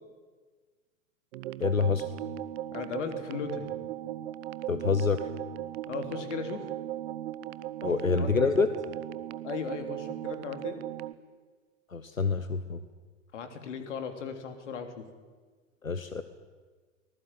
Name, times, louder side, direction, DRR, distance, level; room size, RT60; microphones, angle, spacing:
sound 1, 1.3-11.1, right 13 dB, 50° right, 1.1 m, -37 dB
voice 1, 1.6-2.1 4.7-5.3 7.8-8.7 11.9-12.8 15.8-16.2, left 5 dB, 90° left, 11 dB, 1.1 m, -27 dB
voice 2, 2.7-3.7 5.9-6.7 8.0-8.5 9.4-10.8 13.3-15.0, left 6 dB, 65° left, 7 dB, 3.5 m, -37 dB
24.5 x 19.5 x 9.3 m, 1.4 s
figure-of-eight pair, 90°, 39 cm